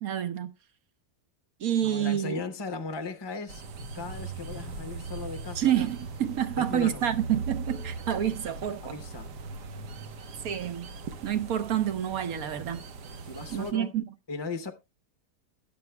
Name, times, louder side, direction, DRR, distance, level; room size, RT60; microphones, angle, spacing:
voice 1, 0.0-0.5 1.6-2.4 5.6-9.0 10.4-10.9 11.2-12.8 13.5-14.0, right 10 dB, 65° right, 1.4 m, -28 dB
voice 2, 1.8-3.6 3.9-5.7 6.6-7.0 8.8-9.3 13.2-13.9 14.3-14.7, left 4 dB, 30° left, 0.5 m, -37 dB
sound 1, 3.5-13.7, right 3 dB, 90° right, 1.6 m, -39 dB
21.5 x 7.2 x 2.2 m
omnidirectional pair, 1.7 m